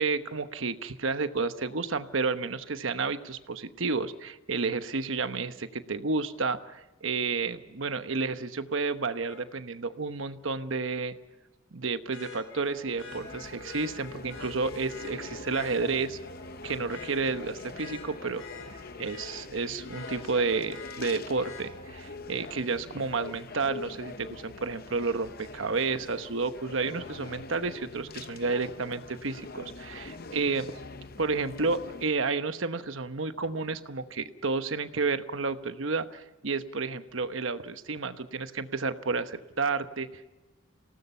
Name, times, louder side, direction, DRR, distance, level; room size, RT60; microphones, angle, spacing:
voice 1, 0.0-11.1 11.7-16.2 16.6-18.5 19.0-30.7 31.2-40.3, right 4 dB, 70° right, 10 dB, 1.1 m, -31 dB
Vehicle horn car horn honking, 9.3-9.4 12.1-15.7 16.3-16.5 16.9-19.5 19.9-21.7 23.5-23.6, left 5 dB, 65° left, 6.5 m, -46 dB
sound 1, 12.3-32.0, left 3 dB, 45° left, 0.8 m, -44 dB
26.5 x 18.0 x 5.6 m, 1.1 s
head